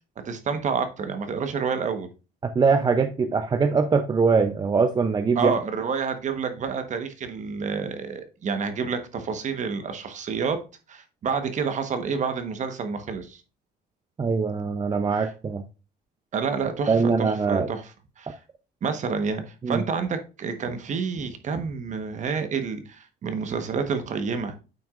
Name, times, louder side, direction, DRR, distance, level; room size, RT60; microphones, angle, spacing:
voice 1, 0.2-2.1 5.3-10.6 10.9-13.4 15.1-15.3 16.3-18.4 18.8-24.5, right 5 dB, 45° right, 1.2 m, -29 dB
voice 2, 2.4-5.5 14.2-15.6 16.9-17.7 19.6-19.8, right 5 dB, 25° right, 0.6 m, -22 dB
9.0 x 5.9 x 2.4 m
cardioid pair, 110°, 17 cm